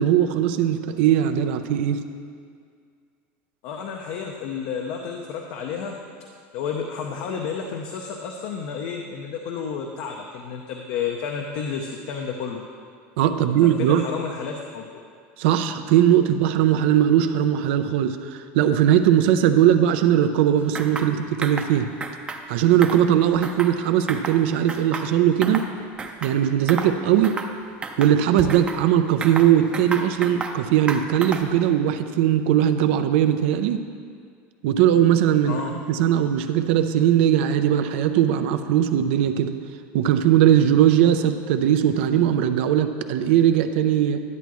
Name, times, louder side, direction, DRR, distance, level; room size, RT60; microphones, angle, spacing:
voice 1, 0.0-2.0 13.2-14.1 15.4-21.9 22.5-25.7 26.2-27.4 28.0-33.8 34.6-39.5 39.9-44.2, right 10 dB, 80° right, 8 dB, 0.5 m, -19 dB
voice 2, 3.6-6.0 6.5-12.6 13.8-14.8 35.4-35.7, left 6 dB, 65° left, 2 dB, 0.7 m, -31 dB
sound 1, 20.7-21.1 21.4-21.7 22.0-22.4 22.7-23.8 24.1-24.4 24.7-25.7 26.0-26.4 26.7-26.9 27.2-27.5 27.8-28.8 29.2-30.6 30.9-31.6, right 3 dB, 15° right, 0.6 m, -32 dB
11.0 x 8.2 x 3.1 m, 2.2 s
supercardioid pair, 135°, 6 cm